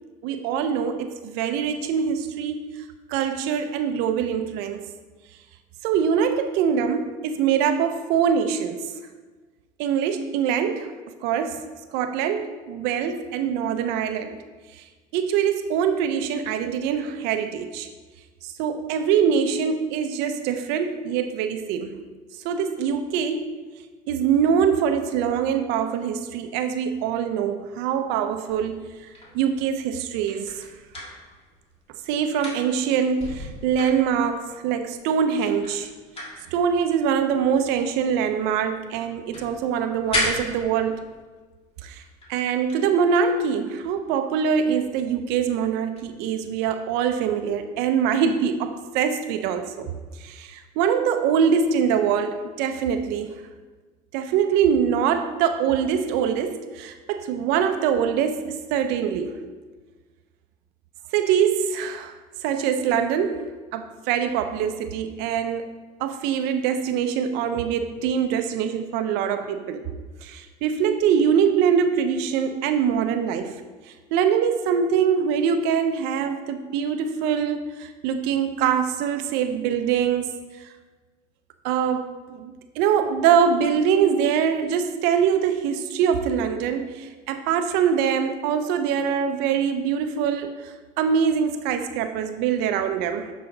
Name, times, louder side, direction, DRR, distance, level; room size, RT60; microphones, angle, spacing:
voice 1, 0.2-2.7 3.1-4.9 5.8-8.9 9.8-10.9 11.2-11.6 11.9-14.4 14.7-14.8 15.1-17.9 18.4-22.0 22.3-23.5 24.1-28.8 29.3-30.7 32.1-35.9 36.5-41.0 41.8-42.0 42.3-53.3 54.1-59.4 61.1-62.1 62.4-65.7 66.0-69.9 70.2-73.6 74.1-80.4 81.6-93.3, right 7 dB, 75° right, 8 dB, 0.6 m, -23 dB
sound 1, 28.5-31.8 32.1-34.5 35.0-35.1 35.3-38.7 39.0-41.3 42.0-42.4 42.7-42.9 46.0-46.2, left 1 dB, 35° left, 1.9 m, -34 dB
7.8 x 5.1 x 3.9 m, 1.4 s
supercardioid pair, 95°, 17 cm